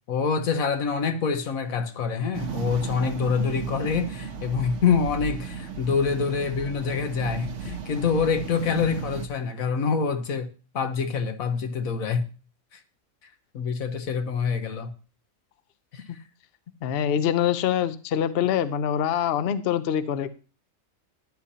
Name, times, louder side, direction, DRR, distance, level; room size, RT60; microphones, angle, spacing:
voice 1, 0.1-10.5 10.7-12.2 13.5-14.9 15.9-16.0, left 6 dB, 85° left, 8 dB, 1.5 m, -26 dB
sound 1, 2.3-9.3, right 7 dB, 65° right, 1.1 m, -35 dB
voice 2, 16.8-20.3, left 9 dB, 55° left, 13 dB, 0.7 m, -24 dB
14.0 x 9.9 x 2.8 m, 0.35 s
omnidirectional pair, 1.4 m